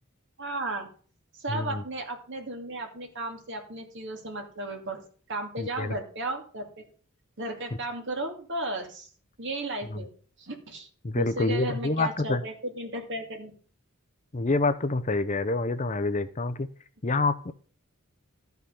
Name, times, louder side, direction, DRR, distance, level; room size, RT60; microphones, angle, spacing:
voice 1, 0.4-0.9 1.4-5.0 5.3-6.8 7.4-9.1 9.4-10.1 10.4-10.9 11.1-13.5, right 2 dB, 55° right, 3 dB, 2.5 m, -34 dB
voice 2, 1.5-1.8 5.6-5.9 9.9-10.0 11.0-12.4 14.3-16.7 17.0-17.5, left 3 dB, 35° left, 12 dB, 0.6 m, -27 dB
13.0 x 5.9 x 6.9 m, 0.42 s
head